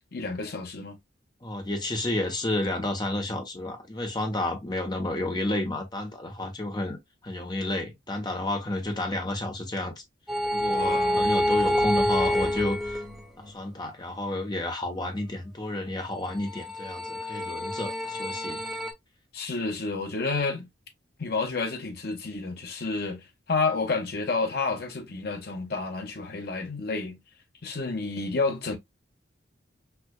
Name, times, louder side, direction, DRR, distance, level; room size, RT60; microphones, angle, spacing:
voice 1, 0.1-1.0 10.7-11.3 19.3-20.7 21.2-27.2 27.6-28.8, left 3 dB, 55° left, 0.9 m, -30 dB
voice 2, 1.4-9.9 10.5-13.0 13.4-18.6, left 1 dB, 25° left, 0.9 m, -31 dB
sound 1, 10.3-13.5 16.3-18.9, equal, ahead, 0.6 m, -27 dB
4.5 x 2.4 x 2.3 m
head